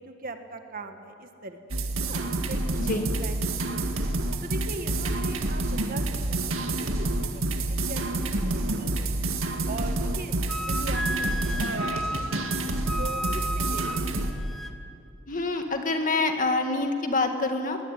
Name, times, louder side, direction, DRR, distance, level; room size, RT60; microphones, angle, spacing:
voice 1, 0.0-2.8 3.2-3.8 4.4-6.5 6.8-9.1 9.7-11.6 11.9-12.4 13.0-14.1, right 2 dB, 45° right, 6 dB, 1.8 m, -41 dB
sound 1, 1.7-14.3, right 2 dB, 80° right, 2.0 m, -28 dB
Wind instrument woodwind instrument, 10.5-14.8, equal, ahead, 1.1 m, -33 dB
voice 2, 15.3-17.8, left 3 dB, 40° left, 5 dB, 1.9 m, -26 dB
21.5 x 20.0 x 9.3 m, 2.6 s
head